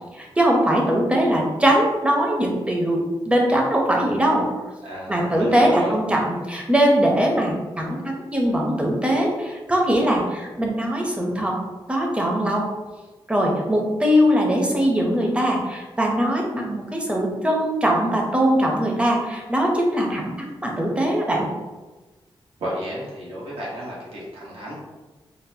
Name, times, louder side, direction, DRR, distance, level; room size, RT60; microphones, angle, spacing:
voice 1, 0.2-4.5 5.1-11.6 11.9-12.6 13.3-21.5, equal, 15° right, -1 dB, 0.6 m, -21 dB
voice 2, 4.8-5.9 22.6-24.7, equal, 85° right, -5 dB, 1.0 m, -32 dB
3.8 x 2.1 x 2.6 m, 1.2 s
wide cardioid pair, 115°, 9 cm